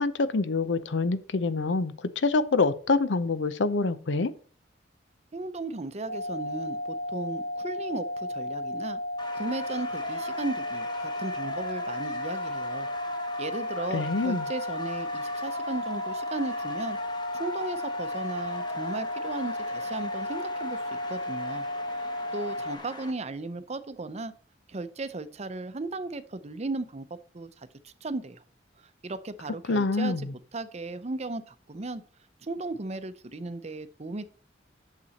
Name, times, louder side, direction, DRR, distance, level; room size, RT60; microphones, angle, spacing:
voice 1, 0.0-4.3 13.9-14.5 29.7-30.3, left 3 dB, 85° left, 15 dB, 0.6 m, -26 dB
voice 2, 5.3-9.0 9.3-12.9 13.4-17.0 17.4-20.8 21.1-21.6 22.0-24.3 24.7-27.1 27.3-28.4 29.0-32.0 32.4-34.2, right 2 dB, 35° right, 12 dB, 0.6 m, -36 dB
sound 1, 6.1-22.8, left 1 dB, 60° left, 1.1 m, -33 dB
sound 2, 9.2-23.1, left 3 dB, 25° left, 1.3 m, -41 dB
8.6 x 6.7 x 4.1 m, 0.42 s
head